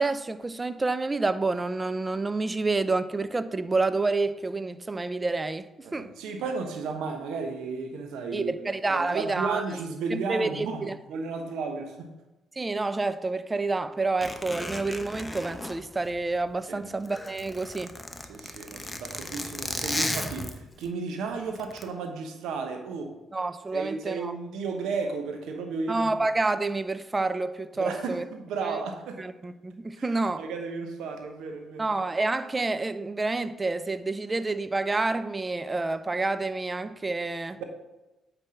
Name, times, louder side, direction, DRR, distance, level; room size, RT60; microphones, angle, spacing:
voice 1, 0.0-6.1 8.3-9.6 10.1-11.0 12.6-17.9 23.3-24.3 25.9-28.2 28.6-28.8 29.2-30.4 31.8-37.6, right 3 dB, 25° right, 0.5 m, -28 dB
voice 2, 5.8-12.1 16.7-17.0 18.3-23.1 23.7-26.1 27.8-29.2 30.0-31.9, right 4 dB, 70° right, 1.1 m, -34 dB
Zipper (clothing), 14.2-16.6 16.9-20.9 21.5-21.8, left 1 dB, 15° left, 1.0 m, -35 dB
9.2 x 3.3 x 6.3 m
hypercardioid pair, 45°, 0 cm